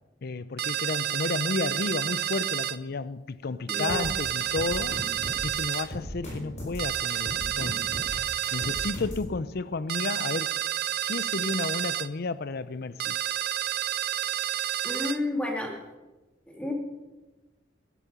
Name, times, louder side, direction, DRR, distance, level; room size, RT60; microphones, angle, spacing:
voice 1, 0.2-5.0 5.4-7.9 8.5-10.6 11.0-13.2, left 3 dB, 55° left, 0.5 m, -32 dB
sound 1, 0.6-2.8 3.7-5.9 6.8-9.0 9.9-12.1 13.0-15.2, right 11 dB, 60° right, 0.5 m, -30 dB
voice 2, 3.7-4.1 14.8-15.7 16.5-16.7, left 2 dB, 5° left, 2.3 m, -31 dB
sound 2, 3.9-9.3, left 1 dB, 40° left, 5.2 m, -37 dB
14.5 x 11.0 x 5.6 m
head